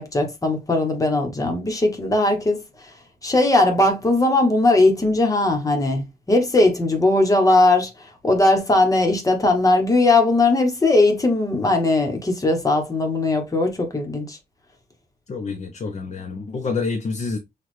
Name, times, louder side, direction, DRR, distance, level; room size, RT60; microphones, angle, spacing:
voice 1, 0.0-2.6 3.2-7.9 8.2-14.4, left 2 dB, 20° left, 1.0 m, -19 dB
voice 2, 15.3-17.4, left 4 dB, 40° left, 0.7 m, -27 dB
6.2 x 2.4 x 3.2 m
wide cardioid pair, 180°, 17 cm